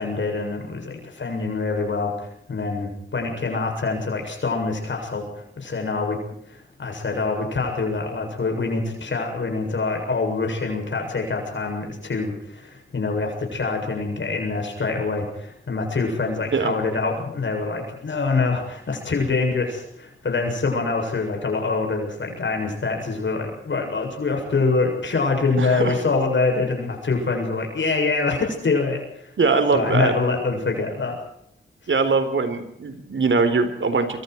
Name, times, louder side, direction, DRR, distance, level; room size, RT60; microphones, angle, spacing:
voice 1, 0.0-2.1 2.5-6.2 6.5-29.3 29.7-31.2, left 3 dB, 65° left, 2 dB, 7.4 m, -25 dB
voice 2, 25.6-25.9 29.4-30.1 31.9-34.2, right 4 dB, 70° right, 9 dB, 4.0 m, -21 dB
27.5 x 25.0 x 4.7 m, 0.75 s
wide cardioid pair, 100°, 21 cm